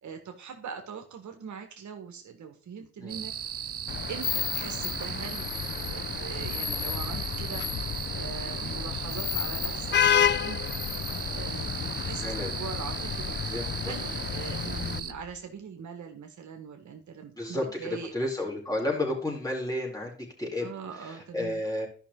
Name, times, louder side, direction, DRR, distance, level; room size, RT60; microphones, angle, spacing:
voice 1, 0.0-3.6 4.1-7.8 8.1-10.8 11.3-13.4 13.8-18.1 20.6-21.6, right 6 dB, 65° right, 4 dB, 1.6 m, -42 dB
sound 1, 3.1-15.1, right 9 dB, 50° right, 0.7 m, -37 dB
Vehicle horn car horn honking / Traffic noise roadway noise, 3.9-15.0, left 9 dB, 35° left, 0.4 m, -31 dB
Vehicle, 8.0-15.4, left 10 dB, 60° left, 1.0 m, -45 dB
voice 2, 12.2-12.6 13.5-13.9 17.4-20.7 21.0-21.9, left 1 dB, 10° left, -1 dB, 4.1 m, -32 dB
12.0 x 5.9 x 3.8 m, 0.41 s
supercardioid pair, 60°, 32 cm